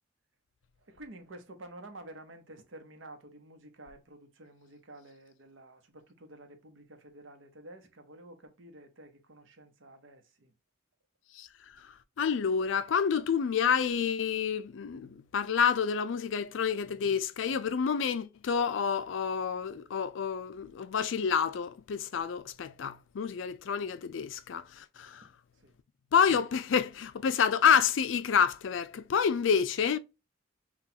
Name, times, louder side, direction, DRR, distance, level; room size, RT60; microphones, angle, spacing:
voice 1, 0.8-10.5 25.6-25.7, right 1 dB, 90° right, 0.9 m, -50 dB
voice 2, 12.2-25.2 26.1-30.0, left 7 dB, 75° left, 0.4 m, -28 dB
5.9 x 2.3 x 2.8 m
head